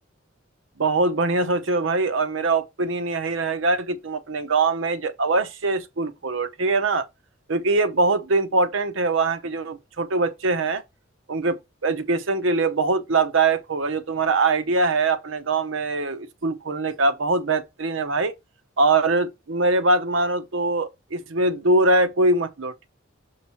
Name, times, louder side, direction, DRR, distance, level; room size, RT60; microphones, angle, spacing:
voice 1, 0.8-7.1 7.5-10.8 11.3-18.3 18.8-22.9, right 3 dB, 70° right, 0.8 m, -22 dB
6.5 x 3.1 x 5.7 m
head